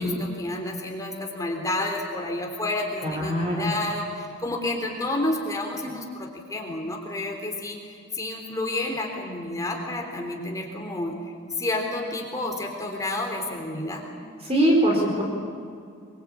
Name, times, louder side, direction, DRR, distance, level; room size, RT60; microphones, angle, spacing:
voice 1, 0.0-11.1 11.6-14.0, left 2 dB, 15° left, 1 dB, 3.6 m, -30 dB
voice 2, 3.0-3.7 14.4-15.2, equal, 30° right, 0 dB, 4.6 m, -22 dB
25.0 x 24.0 x 8.7 m, 2.3 s
head